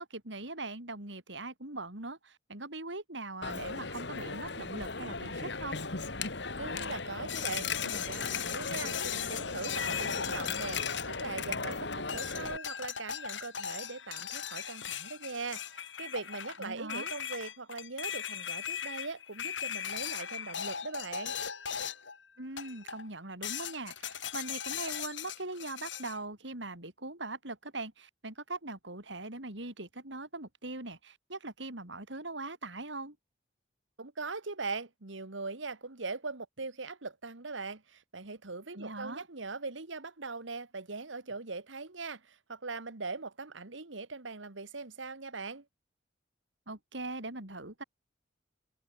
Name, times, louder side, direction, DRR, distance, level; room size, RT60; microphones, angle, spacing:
voice 1, 0.0-5.8 16.6-17.1 22.4-33.2 38.7-39.2 46.7-47.8, right 2 dB, 75° right, 5.2 m, -41 dB
Coin (dropping), 3.4-12.6, left 4 dB, 65° left, 2.5 m, -37 dB
voice 2, 6.6-10.8 11.1-21.4 34.0-45.6, right 3 dB, 90° right, 1.9 m, -41 dB
sound 1, 7.3-11.7 12.1-22.2 22.6-23.1 23.4-26.2, left 8 dB, 85° left, 7.5 m, -39 dB
head